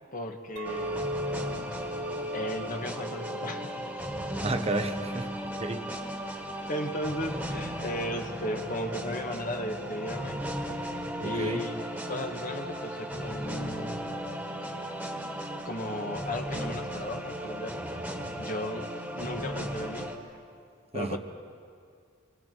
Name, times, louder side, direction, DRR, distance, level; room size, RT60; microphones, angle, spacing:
voice 1, 0.1-1.1 2.3-3.7 6.6-10.4 11.2-11.8 12.1-14.0 15.6-17.8 18.4-20.1 20.9-21.2, left 1 dB, 45° left, 4 dB, 1.6 m, -35 dB
sound 1, 0.6-20.2, equal, 5° right, 1.8 m, -36 dB
Chink clink, 0.6-5.8, equal, 90° right, 0.8 m, -38 dB
voice 2, 4.4-5.8 11.2-11.6 20.9-21.2, right 2 dB, 30° right, 7 dB, 1.0 m, -32 dB
26.0 x 24.0 x 4.6 m, 2.2 s
head